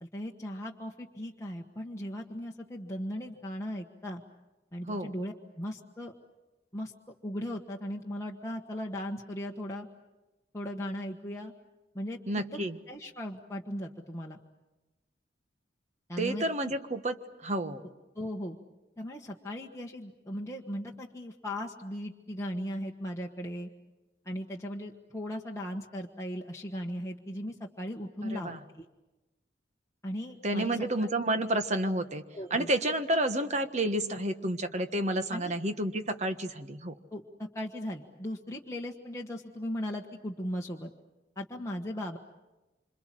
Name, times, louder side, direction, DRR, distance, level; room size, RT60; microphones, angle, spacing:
voice 1, 0.0-4.2 4.7-6.1 6.7-6.9 7.2-9.9 10.5-11.5 11.9-12.2 12.5-12.6 12.9-14.4 16.1-16.8 18.1-18.6 19.0-23.7 24.2-28.9 30.0-31.1 32.3-32.7 35.3-35.5 37.1-40.9 41.4-42.2, equal, 15° left, -2 dB, 1.4 m, -37 dB
voice 2, 12.3-12.8 16.2-17.8 28.3-28.6 30.4-32.2 32.5-36.9, right 1 dB, 40° right, 8 dB, 1.4 m, -30 dB
26.5 x 26.5 x 7.6 m, 1.1 s
head